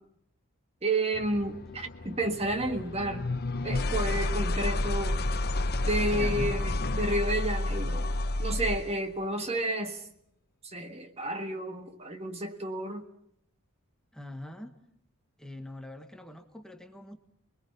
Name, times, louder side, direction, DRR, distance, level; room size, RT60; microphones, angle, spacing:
voice 1, 0.8-3.3 3.6-5.3 5.8-8.1 8.4-10.0 10.6-13.0, right 1 dB, 30° right, 6 dB, 1.5 m, -31 dB
sound 1, 1.1-9.0, left 2 dB, 45° left, 0.9 m, -30 dB
voice 2, 6.1-6.5 14.1-14.8 15.4-17.2, left 1 dB, 5° left, 5 dB, 1.3 m, -43 dB
29.5 x 21.0 x 5.4 m, 0.69 s
head